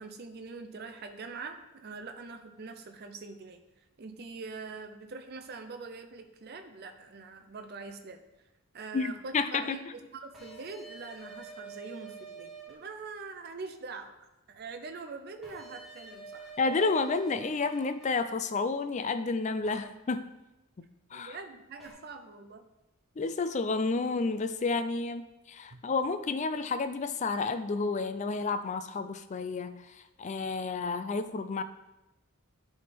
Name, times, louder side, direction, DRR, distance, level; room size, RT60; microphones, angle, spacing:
voice 1, 0.0-3.6 4.0-8.2 8.7-14.1 14.5-16.6 21.1-22.7 25.7-25.8, right 4 dB, 50° right, 6 dB, 0.5 m, -43 dB
voice 2, 8.9-9.8 16.6-20.3 20.8-21.4 23.2-31.6, left 4 dB, 35° left, 11 dB, 0.4 m, -31 dB
sound 1, 10.3-12.7 15.4-18.1 19.6-19.8 21.8-21.9, right 5 dB, ahead, 1.9 m, -47 dB
10.5 x 3.6 x 4.2 m, 0.97 s
head